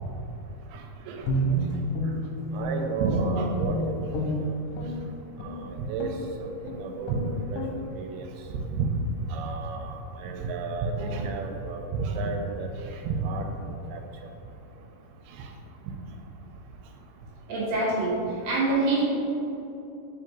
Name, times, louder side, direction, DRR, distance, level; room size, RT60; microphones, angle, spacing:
voice 1, 0.7-1.9 2.5-4.3 5.4-6.1 6.4-7.2 7.5-7.6 7.9-8.3 8.8-8.9 9.3-12.7 13.0-13.5 13.9-14.0 15.4-15.5, right 4 dB, 80° right, 3 dB, 2.4 m, -31 dB
Guitar, 1.2-2.9 3.2-5.0 5.4-5.6 6.0-6.3 6.6-6.8 7.0-7.2 7.5-7.7, equal, 80° left, 2.9 m, -29 dB
voice 2, 17.5-18.2 18.4-19.0, right 2 dB, 65° right, -6 dB, 1.8 m, -25 dB
5.1 x 5.0 x 4.4 m, 2.9 s
omnidirectional pair, 4.6 m